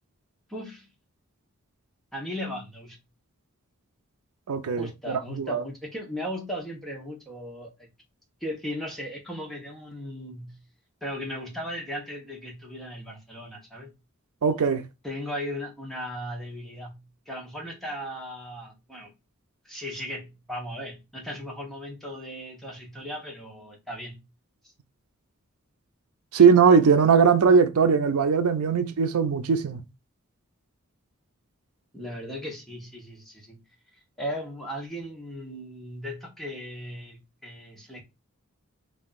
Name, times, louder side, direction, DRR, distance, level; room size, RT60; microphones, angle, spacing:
voice 1, 0.5-0.9 2.1-3.0 4.8-7.9 8.4-10.6 11.0-13.9 15.0-19.1 19.6-24.2 31.9-33.6 34.2-38.0, equal, ahead, 1.0 m, -37 dB
voice 2, 4.5-5.6 14.4-14.8 26.3-29.8, right 5 dB, 85° right, 0.5 m, -20 dB
3.5 x 2.6 x 4.0 m
head